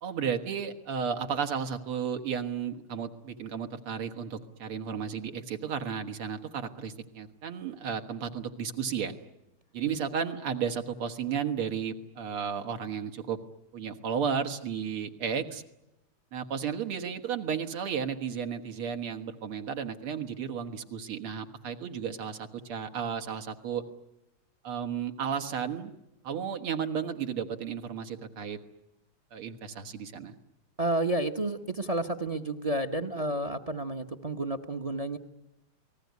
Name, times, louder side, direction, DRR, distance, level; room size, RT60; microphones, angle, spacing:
voice 1, 0.0-9.1 9.7-13.4 13.7-15.6 16.3-23.8 24.6-25.9 26.2-28.6 29.3-30.4, right 7 dB, 85° right, 6 dB, 2.5 m, -33 dB
voice 2, 30.8-35.2, right 2 dB, 40° right, 10 dB, 0.5 m, -31 dB
28.5 x 19.5 x 9.5 m, 0.93 s
omnidirectional pair, 2.4 m